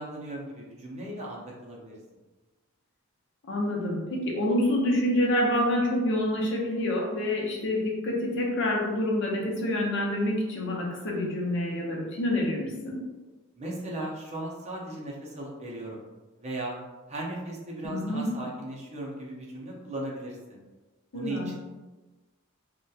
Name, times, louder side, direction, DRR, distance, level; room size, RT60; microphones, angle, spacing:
voice 1, 0.0-1.9 13.6-16.0 16.4-16.8 17.1-20.6 21.1-21.6, right 1 dB, 30° right, -2 dB, 0.5 m, -37 dB
voice 2, 3.5-13.0 17.8-18.3 21.1-21.5, left 1 dB, 60° left, -1 dB, 0.6 m, -27 dB
2.7 x 2.1 x 2.2 m, 1.2 s
head